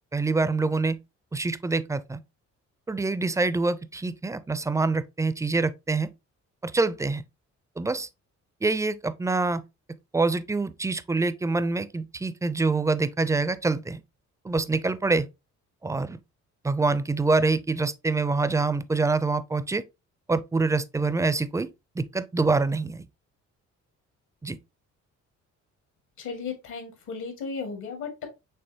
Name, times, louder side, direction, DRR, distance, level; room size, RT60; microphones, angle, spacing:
voice 1, 0.1-1.0 1.3-2.2 2.9-6.1 6.6-7.2 7.8-8.1 8.6-9.6 10.1-14.0 14.4-15.3 15.8-16.2 16.6-19.8 20.3-21.7 22.0-23.1 24.4-24.6, right 3 dB, 10° right, 0.4 m, -25 dB
voice 2, 26.2-28.3, left 5 dB, 80° left, 1.9 m, -35 dB
5.5 x 3.3 x 2.7 m
cardioid pair, 90°, 30 cm